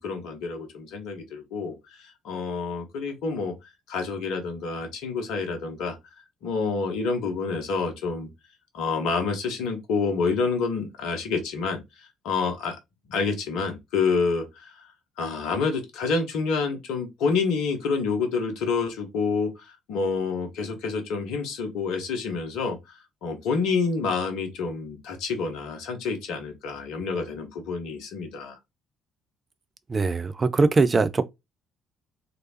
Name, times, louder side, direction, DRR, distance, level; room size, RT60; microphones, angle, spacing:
voice 1, 0.0-3.5 3.9-6.0 6.4-8.3 8.7-12.8 13.1-14.9 15.2-28.6, left 4 dB, 60° left, 0.8 m, -28 dB
voice 2, 29.9-31.2, right 3 dB, 30° right, 0.4 m, -21 dB
3.1 x 2.9 x 2.8 m
figure-of-eight pair, 45°, 0 cm